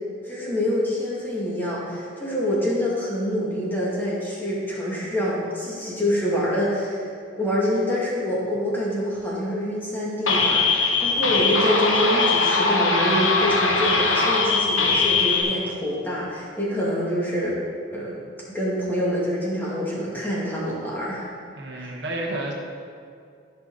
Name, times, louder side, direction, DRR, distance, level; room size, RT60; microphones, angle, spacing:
voice 1, 0.2-7.0 7.4-17.6 17.9-18.2 18.5-21.3 21.7-21.9, equal, 10° left, -7 dB, 2.1 m, -26 dB
sound 1, 10.3-15.4, left 4 dB, 85° left, 1.2 m, -21 dB
voice 2, 21.5-22.5, right 1 dB, 60° right, 0 dB, 1.2 m, -30 dB
14.0 x 5.7 x 3.9 m, 2.3 s
head